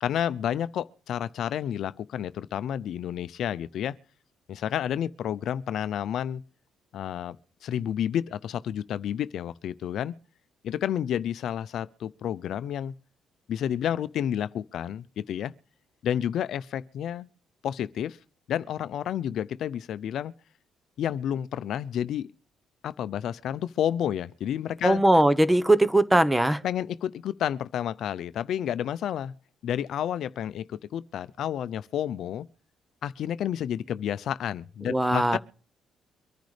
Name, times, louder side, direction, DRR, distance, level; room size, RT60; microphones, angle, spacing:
voice 1, 0.0-4.0 4.5-6.4 6.9-7.4 7.6-10.1 10.6-12.9 13.5-15.5 16.0-17.3 17.6-18.2 18.5-20.3 21.0-22.3 22.8-25.0 26.6-29.3 29.6-32.5 33.0-35.4, left 10 dB, 75° left, 0.5 m, -30 dB
voice 2, 24.8-26.6 34.8-35.4, right 1 dB, 10° right, 1.0 m, -20 dB
24.0 x 10.5 x 3.3 m
cardioid pair, 90°, 0 cm